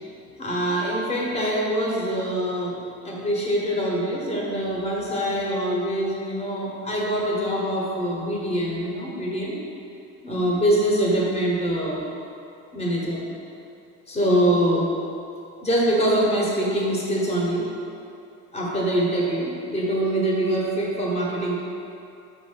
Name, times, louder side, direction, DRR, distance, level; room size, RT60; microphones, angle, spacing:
voice 1, 0.4-9.6 10.2-12.0 12.7-13.2 14.1-14.9 15.6-17.7 18.5-21.6, right 1 dB, 20° left, -4 dB, 0.8 m, -24 dB
5.3 x 2.5 x 3.7 m, 2.6 s
cardioid pair, 125°, 31 cm